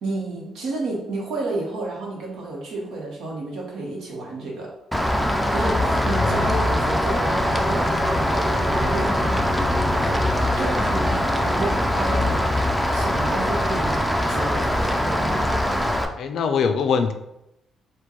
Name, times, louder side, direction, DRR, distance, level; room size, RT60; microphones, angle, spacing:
voice 1, 0.0-4.7 5.5-12.4 12.9-15.7, right 2 dB, 80° right, -1 dB, 1.0 m, -31 dB
Rain, 4.9-16.0, left 1 dB, ahead, 0.4 m, -22 dB
voice 2, 6.2-6.5 16.2-17.1, left 5 dB, 65° left, 7 dB, 0.4 m, -23 dB
4.4 x 2.2 x 3.0 m, 0.85 s
cardioid pair, 90°, 0 cm